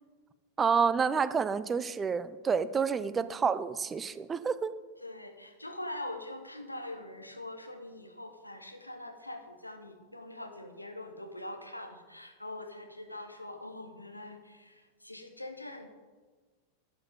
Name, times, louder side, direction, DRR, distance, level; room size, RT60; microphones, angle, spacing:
voice 1, 0.6-4.7, right 6 dB, 20° right, 15 dB, 0.5 m, -29 dB
voice 2, 5.0-15.9, left 1 dB, 85° left, 5 dB, 1.1 m, -43 dB
11.5 x 7.1 x 5.2 m, 1.4 s
figure-of-eight pair, 90°, 0 cm